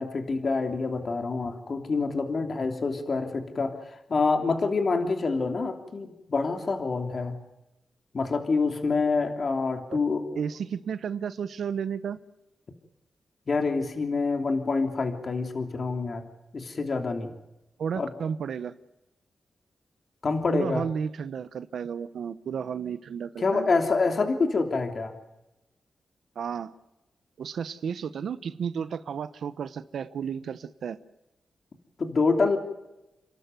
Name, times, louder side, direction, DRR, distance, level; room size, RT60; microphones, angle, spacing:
voice 1, 0.0-3.7 4.1-7.4 8.1-10.2 13.5-16.3 16.5-17.3 18.0-18.1 20.2-20.8 23.4-25.1 32.0-32.6, left 4 dB, 55° left, 5 dB, 3.1 m, -26 dB
voice 2, 10.4-12.2 17.8-18.7 20.5-23.7 26.4-26.7 27.4-31.0, right 7 dB, 80° right, 14 dB, 0.9 m, -33 dB
29.5 x 13.0 x 9.4 m, 0.95 s
cardioid pair, 70°, 0 cm